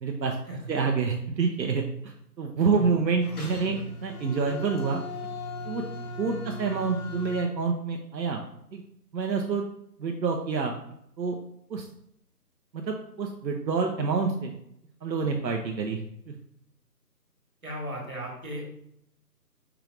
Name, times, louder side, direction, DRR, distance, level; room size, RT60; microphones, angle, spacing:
voice 1, 0.0-0.4 0.7-5.0 5.7-5.8 6.2-8.4 8.7-8.8 9.1-9.6 10.0-10.7 11.2-11.4 11.7-11.9 12.7-14.5 15.0-16.3, right 5 dB, 90° right, 3 dB, 0.7 m, -27 dB
voice 2, 2.6-2.9 17.6-18.7, equal, 55° right, -2 dB, 1.6 m, -36 dB
sound 1, 3.2-7.4, left 1 dB, 60° left, 0.8 m, -38 dB
4.6 x 3.3 x 2.5 m, 0.75 s
figure-of-eight pair, 180°, 50 cm